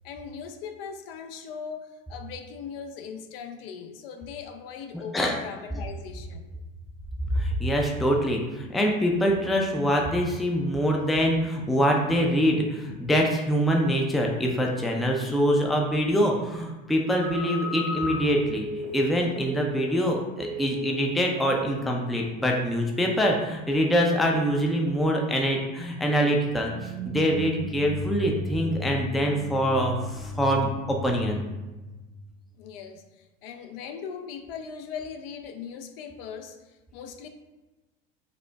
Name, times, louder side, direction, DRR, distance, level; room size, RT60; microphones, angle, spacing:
voice 1, 0.0-6.5 32.6-37.3, left 6 dB, 75° left, 6 dB, 0.5 m, -39 dB
voice 2, 4.9-5.4 7.3-31.4, equal, ahead, 0 dB, 0.3 m, -24 dB
Telephone, 17.1-20.1 20.4-21.1 21.4-21.7, left 1 dB, 70° right, 1.1 m, -34 dB
sound 1, 26.7-32.6, equal, 35° right, 0.7 m, -35 dB
5.0 x 2.1 x 2.2 m, 1.1 s
hypercardioid pair, 95°, 29 cm